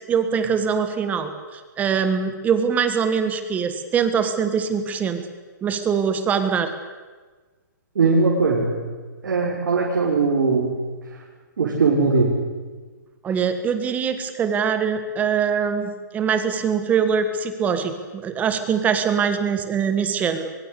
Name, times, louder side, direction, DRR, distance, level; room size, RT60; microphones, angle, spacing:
voice 1, 0.1-5.2 5.6-6.7 13.2-20.5, right 6 dB, 15° right, 9 dB, 1.7 m, -23 dB
voice 2, 7.9-8.8 9.2-10.8 11.1-11.2 11.6-12.3, right 4 dB, 80° right, -3 dB, 6.2 m, -20 dB
23.0 x 23.0 x 8.4 m, 1.4 s
hypercardioid pair, 155°, 10 cm